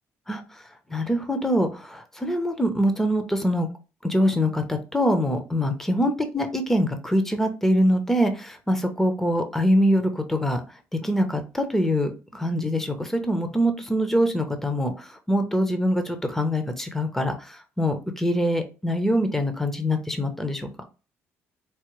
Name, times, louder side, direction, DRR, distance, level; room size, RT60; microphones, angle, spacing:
voice 1, 0.9-3.7 4.0-10.6 11.0-14.9 15.3-20.7, equal, 5° left, 6 dB, 0.8 m, -24 dB
4.6 x 2.2 x 3.1 m, 0.32 s
cardioid pair, 95°, 5 cm